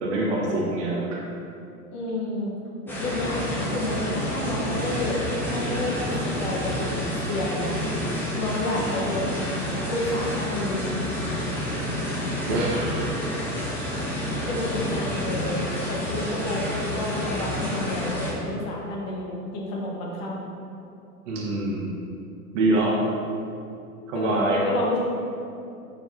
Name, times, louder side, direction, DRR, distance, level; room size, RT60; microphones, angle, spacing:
voice 1, 0.0-1.2 8.7-8.9 12.5-13.3 21.2-21.9 22.5-23.0 24.1-24.7, right 2 dB, 50° right, -3 dB, 1.3 m, -25 dB
voice 2, 1.9-2.6 2.8-5.2 5.5-7.8 8.3-10.8 14.5-15.6 15.9-20.5 24.1-25.0, left 1 dB, 40° left, -3 dB, 1.2 m, -30 dB
sound 1, 2.9-18.3, left 1 dB, 5° left, 1.3 m, -29 dB
5.4 x 4.7 x 3.8 m, 2.6 s
figure-of-eight pair, 90°, 47 cm